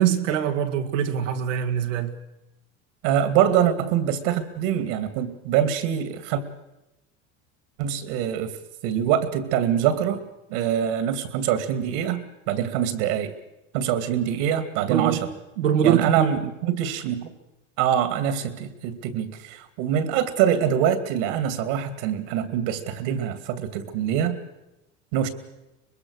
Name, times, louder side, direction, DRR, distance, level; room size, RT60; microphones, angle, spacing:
voice 1, 0.0-2.1 14.9-15.2 15.6-16.3, right 9 dB, 90° right, 2.1 m, -23 dB
voice 2, 3.0-6.4 7.8-8.5 8.8-10.2 10.5-13.3 13.7-15.2 15.8-17.3 17.8-24.4 25.1-25.3, right 9 dB, 70° right, 2.6 m, -24 dB
24.5 x 21.0 x 6.6 m
supercardioid pair, 110°, 36 cm